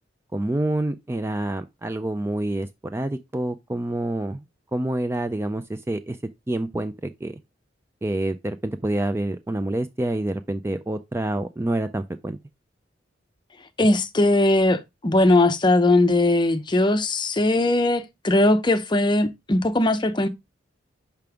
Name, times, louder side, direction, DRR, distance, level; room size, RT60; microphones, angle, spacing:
voice 1, 0.3-4.4 4.7-6.2 6.5-7.4 8.0-12.4, right 1 dB, 15° right, 0.3 m, -27 dB
voice 2, 13.8-20.3, left 2 dB, 25° left, 0.6 m, -20 dB
5.8 x 5.2 x 3.4 m
head